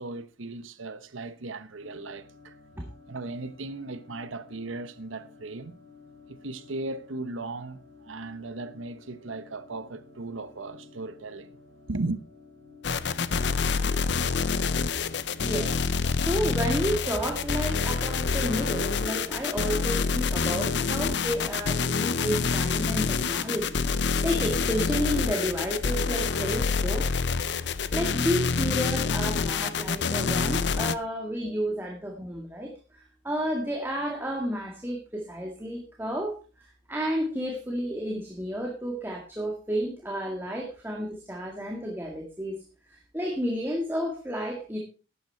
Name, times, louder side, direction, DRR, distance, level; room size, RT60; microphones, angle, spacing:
voice 1, 0.0-2.6 3.1-5.8 6.3-11.6 11.9-12.2, right 2 dB, 85° right, 1.0 m, -37 dB
sound 1, 1.8-19.8, left 4 dB, 60° right, 4.7 m, -53 dB
sound 2, 12.8-30.9, left 5 dB, 60° left, 0.6 m, -27 dB
voice 2, 15.4-15.8 16.2-27.1 27.9-44.8, equal, 10° right, 1.8 m, -31 dB
11.5 x 9.3 x 4.4 m
head